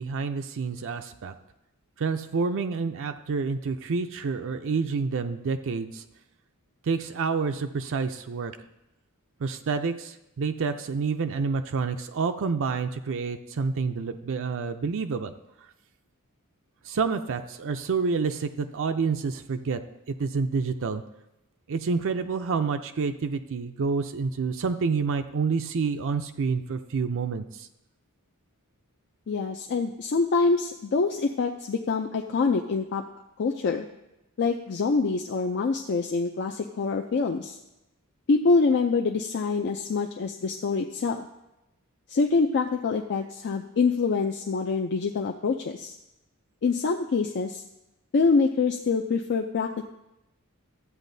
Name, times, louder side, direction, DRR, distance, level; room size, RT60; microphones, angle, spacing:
voice 1, 0.0-1.3 2.0-6.0 6.9-8.5 9.4-15.3 16.9-19.8 20.1-21.0 21.7-27.4, right 5 dB, 60° right, 8 dB, 0.5 m, -28 dB
voice 2, 29.3-33.0 33.4-33.9 34.4-37.6 38.3-41.2 42.1-45.9 46.6-47.6 48.1-49.8, left 4 dB, 50° left, 3 dB, 0.4 m, -25 dB
13.0 x 8.2 x 2.7 m, 0.91 s
head